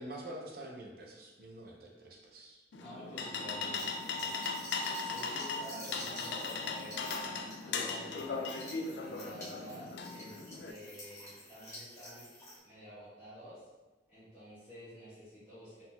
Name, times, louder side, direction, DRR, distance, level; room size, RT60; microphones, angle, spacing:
voice 1, 0.0-2.6, right 1 dB, 55° right, 0 dB, 0.7 m, -46 dB
sound 1, 2.7-10.7, left 4 dB, 75° left, 0.4 m, -38 dB
voice 2, 2.8-4.4 5.1-8.5 9.0-12.3 12.6-13.6 14.1-15.8, equal, 10° right, -17 dB, 1.4 m, -50 dB
sound 2, 3.7-12.6, left 1 dB, 15° left, 0.9 m, -50 dB
4.0 x 3.9 x 2.2 m, 1.2 s
head